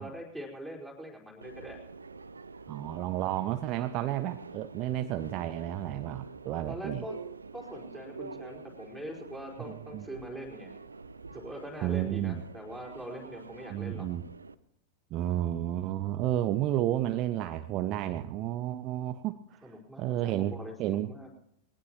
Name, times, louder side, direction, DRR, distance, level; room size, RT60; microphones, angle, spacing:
voice 1, 0.0-1.8 6.7-7.2 7.5-10.7 11.3-14.1 19.6-21.3, equal, ahead, -1 dB, 4.4 m, -43 dB
Subway metro underground, 1.4-14.5, right 4 dB, 75° right, 0.6 m, -46 dB
voice 2, 2.7-7.0 9.7-10.0 11.8-12.4 13.7-14.2 15.1-21.1, right 12 dB, 40° right, 10 dB, 0.7 m, -32 dB
21.0 x 19.0 x 3.0 m, 0.76 s
figure-of-eight pair, 90°, 0 cm